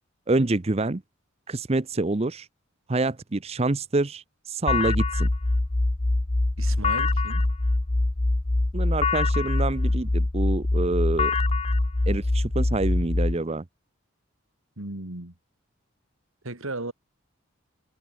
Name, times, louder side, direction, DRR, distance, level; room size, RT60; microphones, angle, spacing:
voice 1, 0.3-1.0 1.5-2.5 2.9-5.3 8.7-11.3 12.1-13.6, right 2 dB, 30° right, 0.7 m, -26 dB
sound 1, 4.7-13.3, left 2 dB, 30° left, 0.7 m, -24 dB
voice 2, 6.6-7.5 14.8-15.3 16.4-16.9, right 2 dB, 80° right, 3.2 m, -35 dB
head